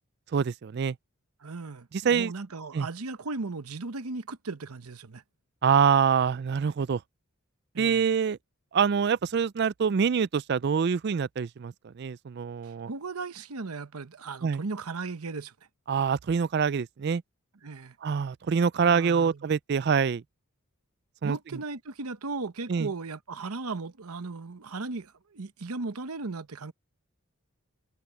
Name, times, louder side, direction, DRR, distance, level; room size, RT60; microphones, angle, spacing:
voice 1, 0.3-1.0 2.0-2.3 2.7-2.9 5.6-7.0 7.8-8.4 8.7-12.9 14.4-14.6 15.9-17.2 18.0-20.2 21.2-21.4 22.7-22.9, right 6 dB, 50° right, 0.3 m, -25 dB
voice 2, 1.4-5.2 7.7-8.1 12.6-15.5 17.6-18.0 18.7-19.5 21.2-26.7, right 3 dB, 85° right, 0.9 m, -37 dB
head